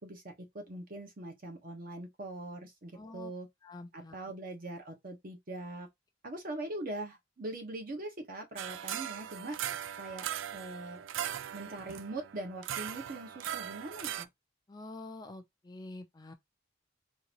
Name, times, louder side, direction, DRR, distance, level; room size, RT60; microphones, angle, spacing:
voice 1, 0.0-3.5 3.9-5.9 6.2-9.6 10.0-10.3 10.5-11.1 11.5-14.3, right 2 dB, 45° right, 1.0 m, -42 dB
voice 2, 2.9-3.3 3.6-4.2 14.7-16.3, left 2 dB, 20° left, 0.4 m, -47 dB
sound 1, 8.6-14.2, right 10 dB, 70° right, 0.3 m, -39 dB
3.8 x 2.6 x 2.9 m
head